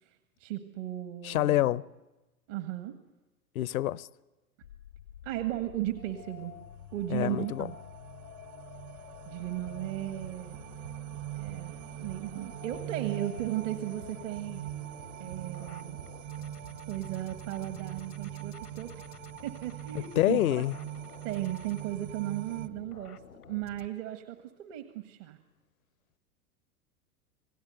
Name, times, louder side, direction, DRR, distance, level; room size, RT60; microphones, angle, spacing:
voice 1, 0.0-1.7 2.5-3.0 5.2-6.5 6.9-7.7 9.2-10.6 11.3-14.6 15.2-16.0 16.9-19.1 19.4-20.6 21.2-25.4, right 13 dB, 55° right, 1.6 m, -36 dB
voice 2, 1.2-1.8 3.5-4.1 7.1-7.7 19.9-20.7, left 14 dB, 65° left, 0.7 m, -27 dB
sound 1, 4.6-23.9, left 10 dB, 85° left, 1.0 m, -51 dB
sound 2, 6.5-22.7, right 14 dB, 40° right, 1.1 m, -43 dB
Run, 9.4-18.8, right 8 dB, 80° right, 5.1 m, -51 dB
27.5 x 17.5 x 7.9 m
figure-of-eight pair, 95°, 45 cm